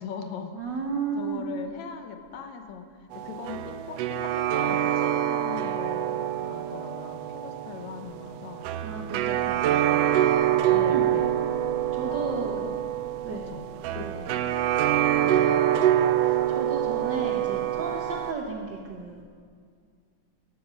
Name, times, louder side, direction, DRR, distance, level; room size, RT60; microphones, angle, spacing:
voice 1, 0.0-0.6 1.2-8.7 10.7-11.4 12.1-12.7 13.3-14.5 15.4-15.7, left 6 dB, 75° left, 6 dB, 2.2 m, -40 dB
voice 2, 0.5-1.4 8.8-9.9 10.9-11.1 11.9-12.7 13.2-13.5 14.0-14.3 15.2-15.6 16.1-19.2, right 4 dB, 65° right, 1 dB, 1.1 m, -34 dB
sound 1, 3.1-18.3, right 11 dB, 85° right, 1.4 m, -26 dB
13.5 x 12.5 x 6.4 m, 2.1 s
omnidirectional pair, 3.4 m